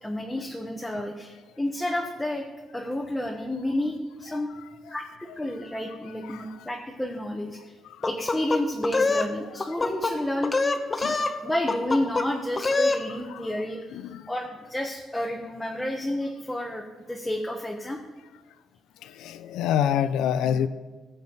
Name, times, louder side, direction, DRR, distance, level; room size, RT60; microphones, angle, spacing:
voice 1, 0.0-2.5 2.7-4.5 4.9-5.0 5.4-7.6 8.0-10.5 11.4-13.9 14.3-18.0, left 1 dB, 5° left, 0 dB, 1.2 m, -30 dB
voice 2, 4.3-4.6 5.3-6.7 9.5-9.7 11.0-11.3 13.0-13.5 13.9-14.2 19.0-20.7, left 9 dB, 90° left, 12 dB, 0.4 m, -29 dB
sound 1, 8.0-9.3 9.6-10.1 10.4-11.4 11.7-12.3 12.6-13.0, left 3 dB, 25° left, 0.9 m, -24 dB
15.5 x 7.2 x 4.0 m, 1.3 s
cardioid pair, 90°, 0 cm